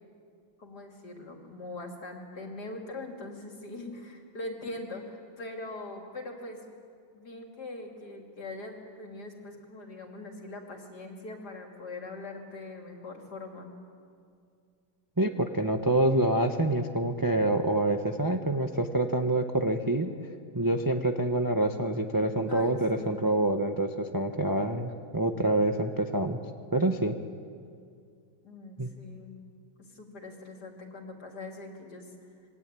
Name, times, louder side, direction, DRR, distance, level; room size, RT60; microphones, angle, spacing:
voice 1, 0.6-6.6 7.1-13.7 22.5-23.2 28.4-29.4 29.8-32.1, left 2 dB, 55° left, 2 dB, 3.6 m, -42 dB
voice 2, 15.2-20.1 20.5-26.4 26.7-27.1 28.8-28.9, right 1 dB, 15° right, 5 dB, 0.8 m, -26 dB
26.5 x 22.5 x 9.1 m, 2.3 s
omnidirectional pair, 2.2 m